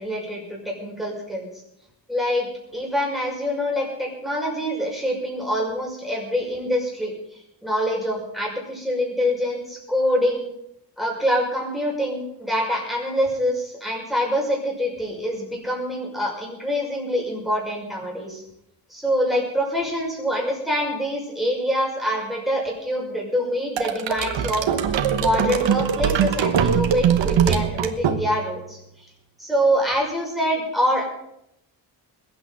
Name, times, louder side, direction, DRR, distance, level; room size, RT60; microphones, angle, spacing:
voice 1, 0.0-1.5 2.1-7.1 7.6-10.5 11.0-18.4 18.9-29.1 29.4-31.0, equal, ahead, -2 dB, 5.7 m, -25 dB
sound 1, 23.8-28.6, right 8 dB, 85° right, 1.1 m, -22 dB
21.0 x 8.9 x 5.9 m, 0.81 s
wide cardioid pair, 115°, 43 cm